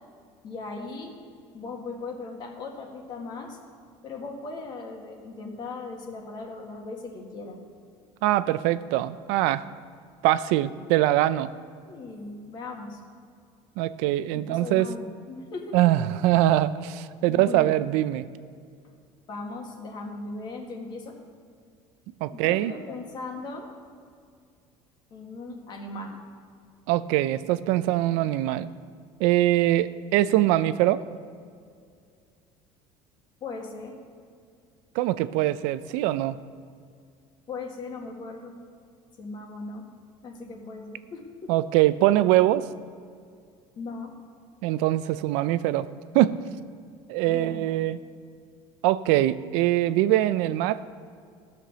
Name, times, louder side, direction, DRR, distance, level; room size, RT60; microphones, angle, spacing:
voice 1, 0.4-1.1 1.5-3.6 4.0-7.6 11.9-13.0 14.3-15.8 17.2-17.8 19.3-21.2 22.3-23.7 25.1-26.2 33.4-34.0 37.5-38.5 39.2-39.9 40.2-41.5 43.8-44.1 47.2-47.6, left 3 dB, 40° left, 1 dB, 1.9 m, -38 dB
voice 2, 8.2-9.7 10.2-11.5 13.8-14.9 15.7-18.2 22.2-22.7 26.9-28.7 29.2-31.0 34.9-36.4 41.5-42.7 44.6-45.9 46.1-46.4 47.1-48.0 48.8-50.8, right 14 dB, 80° right, 14 dB, 0.4 m, -23 dB
15.5 x 6.0 x 6.8 m, 2.2 s
cardioid pair, 145°, 12 cm